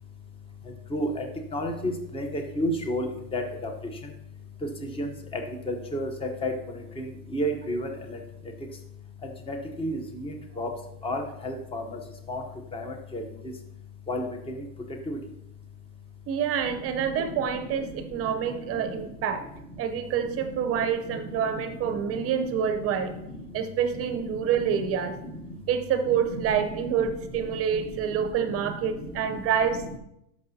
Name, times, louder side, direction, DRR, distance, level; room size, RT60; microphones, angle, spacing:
voice 1, 0.9-1.2 1.5-1.7 2.1-3.4 5.0-5.1 5.7-6.1 6.4-6.5 7.0-7.1 7.3-7.9 9.5-10.7 11.0-11.8 12.3-12.4 12.7-12.9 13.1-13.2 14.1-14.2 15.1-15.2, equal, 10° left, 4 dB, 0.8 m, -30 dB
voice 2, 16.3-19.4 19.8-23.1 23.5-25.2 25.7-30.0, right 7 dB, 30° right, 9 dB, 0.7 m, -27 dB
12.5 x 6.1 x 2.8 m, 0.83 s
supercardioid pair, 130°, 46 cm